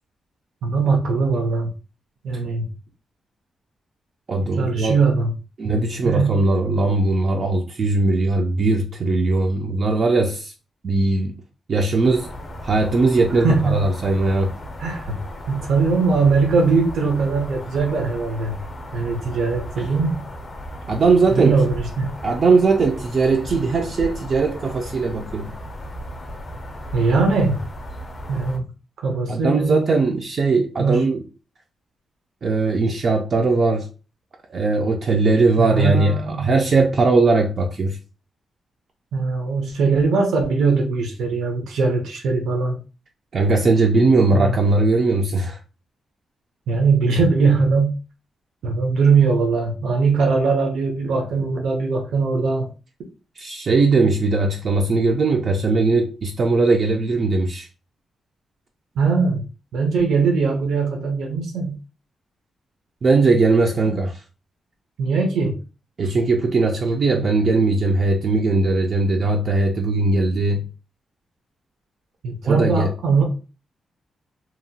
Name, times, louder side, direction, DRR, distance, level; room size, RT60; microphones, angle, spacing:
voice 1, 0.6-1.7 2.2-2.6 4.6-5.3 6.0-6.3 13.4-13.8 14.8-15.1 15.5-18.6 18.9-20.2 21.3-22.1 26.9-27.6 28.3-28.6 29.0-29.9 30.8-31.0 35.6-36.5 39.1-42.8 44.3-44.5 46.7-48.0 48.6-52.7 59.0-59.4 59.7-61.8 65.0-65.6 72.2-73.2, right 4 dB, 80° right, 0.6 m, -20 dB
voice 2, 4.3-4.9 5.6-10.5 10.8-11.3 11.7-12.3 12.6-14.5 19.8-19.9 20.9-21.7 22.2-25.5 29.3-31.2 32.4-33.9 34.5-38.0 43.3-45.6 53.4-57.7 63.0-64.2 66.0-70.6 72.5-72.9, right 3 dB, 40° right, 0.3 m, -19 dB
sound 1, 12.0-28.6, equal, 30° left, 0.5 m, -36 dB
2.8 x 2.1 x 2.7 m
wide cardioid pair, 150°, 0 cm